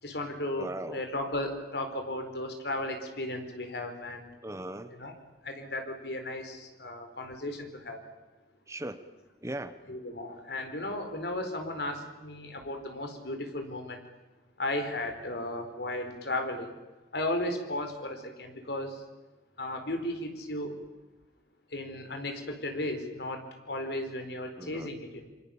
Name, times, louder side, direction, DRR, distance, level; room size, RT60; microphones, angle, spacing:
voice 1, 0.0-4.3 4.9-5.1 5.4-8.0 9.9-14.0 14.6-16.8 17.1-19.0 19.6-20.8 21.7-25.2, left 1 dB, 70° left, 6 dB, 4.5 m, -35 dB
voice 2, 0.6-1.0 4.4-5.0 8.7-9.0 9.4-9.8 24.6-24.9, right 1 dB, 15° right, 10 dB, 1.2 m, -38 dB
27.0 x 25.0 x 7.2 m, 1.1 s
head